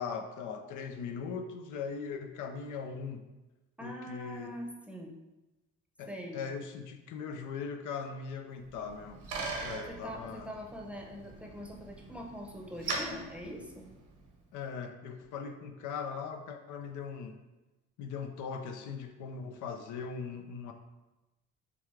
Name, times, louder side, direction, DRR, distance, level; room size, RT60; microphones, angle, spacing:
voice 1, 0.0-3.3 3.8-4.5 6.0-9.2 9.6-10.5 14.5-17.4 18.0-20.7, left 6 dB, 80° left, 6 dB, 0.5 m, -40 dB
voice 2, 3.8-5.1 6.1-6.4 9.9-13.9, equal, 5° right, 0 dB, 0.7 m, -43 dB
Bicycle, 8.6-14.4, right 3 dB, 75° right, 1.0 m, -41 dB
6.9 x 2.3 x 3.2 m, 1.0 s
cardioid pair, 90°, 30 cm